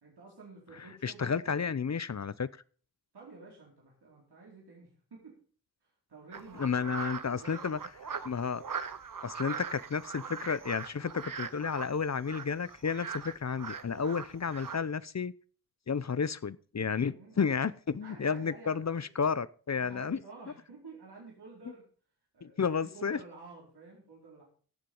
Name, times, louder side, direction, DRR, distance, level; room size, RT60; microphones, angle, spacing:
voice 1, 0.0-1.5 3.1-5.4 5.8-7.8 14.0-14.4 16.9-17.7 18.0-19.0 19.8-21.8 22.3-24.4, right 3 dB, 80° right, -4 dB, 4.5 m, -51 dB
voice 2, 1.0-2.5 6.6-7.8 8.2-8.6 9.2-15.3 15.9-20.2 22.4-23.2, left 6 dB, 45° left, 17 dB, 0.7 m, -32 dB
sound 1, 6.3-14.8, right 6 dB, 55° right, 1.0 m, -41 dB
16.0 x 7.5 x 5.4 m, 0.43 s
cardioid pair, 50°, 39 cm